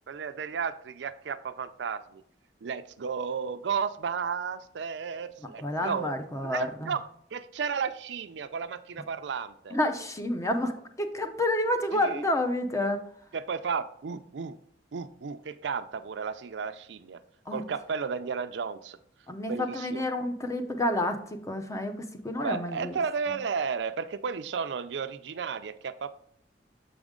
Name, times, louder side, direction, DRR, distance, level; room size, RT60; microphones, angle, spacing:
voice 1, 0.1-2.2 2.6-7.0 7.3-9.8 11.9-12.2 13.3-14.6 14.9-17.2 17.5-19.0 19.5-20.0 22.4-26.1, right 6 dB, 80° right, 11 dB, 0.4 m, -33 dB
voice 2, 5.6-6.9 9.7-13.0 17.5-17.6 19.3-23.0, left 1 dB, 20° left, 6 dB, 0.6 m, -29 dB
7.1 x 5.1 x 3.6 m, 0.68 s
head